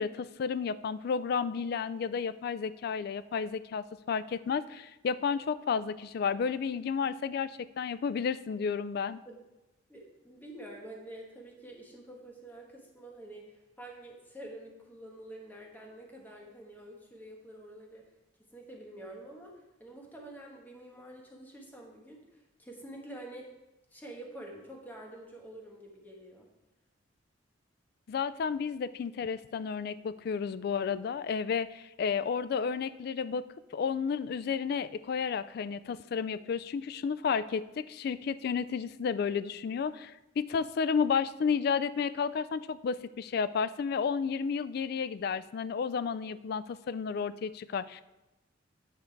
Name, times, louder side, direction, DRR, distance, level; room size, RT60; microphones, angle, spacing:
voice 1, 0.0-9.2 28.1-33.5 33.7-48.0, left 6 dB, 55° left, 16 dB, 0.3 m, -32 dB
voice 2, 9.9-18.1 18.5-19.5 19.8-23.5 23.9-26.5, right 1 dB, 10° left, -1 dB, 1.3 m, -47 dB
9.2 x 5.2 x 4.5 m, 1.0 s
head